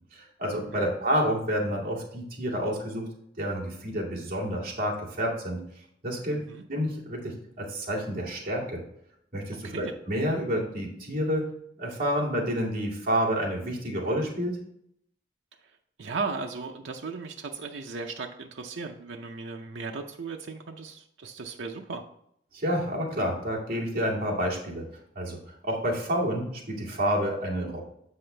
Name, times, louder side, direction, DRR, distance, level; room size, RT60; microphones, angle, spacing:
voice 1, 0.1-3.1 3.4-5.6 6.0-6.4 6.7-8.8 9.3-11.5 11.8-14.6 22.5-24.9 25.1-25.4 25.6-27.8, equal, 50° right, -5 dB, 2.3 m, -29 dB
voice 2, 6.3-6.6 9.5-9.9 16.0-22.0, right 4 dB, 75° right, 3 dB, 0.6 m, -36 dB
7.7 x 5.6 x 3.3 m, 0.72 s
head